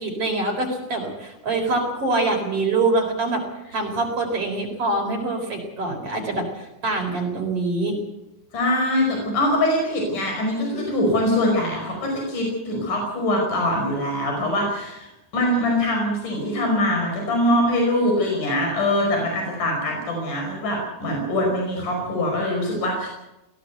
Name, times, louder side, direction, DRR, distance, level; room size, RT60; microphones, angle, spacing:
voice 1, 0.0-3.4 3.7-7.9, right 3 dB, 45° right, 1 dB, 5.0 m, -24 dB
voice 2, 8.5-23.1, left 1 dB, 80° left, 1 dB, 6.7 m, -23 dB
20.0 x 16.5 x 8.1 m, 0.96 s
omnidirectional pair, 3.6 m